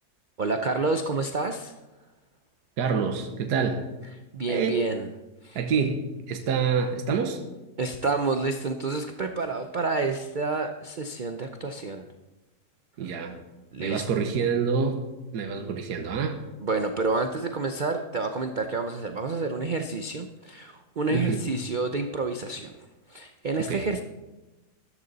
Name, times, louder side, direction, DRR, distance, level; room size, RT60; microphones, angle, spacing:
voice 1, 0.4-1.7 4.3-5.1 5.4-5.6 7.8-12.0 13.7-14.1 16.6-22.7 23.1-24.0, right 3 dB, 50° right, 6 dB, 0.5 m, -29 dB
voice 2, 2.8-3.8 4.5-4.8 5.5-6.0 6.3-7.4 13.0-13.4 13.8-15.0 15.3-16.4 21.1-21.4 23.7-23.9, right 6 dB, 75° right, 5 dB, 1.6 m, -26 dB
13.5 x 12.5 x 4.1 m, 1.1 s
omnidirectional pair, 1.8 m